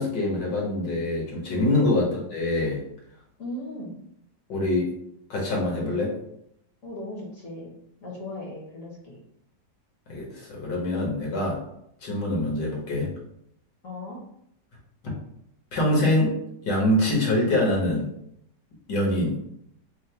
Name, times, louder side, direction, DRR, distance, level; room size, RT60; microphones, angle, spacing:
voice 1, 0.0-2.8 4.5-4.9 5.3-6.2 10.1-11.6 12.0-13.1 15.7-16.4 16.6-18.1 18.9-19.4, left 1 dB, 70° left, -2 dB, 1.8 m, -24 dB
voice 2, 3.4-4.0 6.8-7.7 8.0-9.2 13.8-14.2, left 1 dB, 55° left, -2 dB, 1.3 m, -37 dB
3.9 x 2.1 x 4.3 m, 0.74 s
omnidirectional pair, 2.0 m